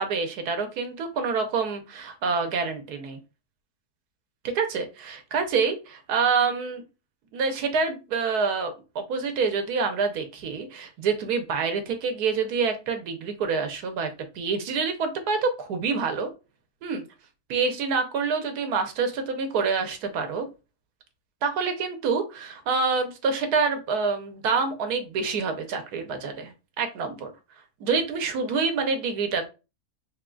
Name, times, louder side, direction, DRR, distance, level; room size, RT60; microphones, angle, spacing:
voice 1, 0.0-3.2 4.4-6.8 7.3-16.3 16.8-17.0 17.5-20.5 21.4-26.5 26.8-27.3 27.8-29.5, right 5 dB, 80° right, 6 dB, 1.3 m, -27 dB
3.7 x 2.3 x 3.7 m, 0.29 s
omnidirectional pair, 1.6 m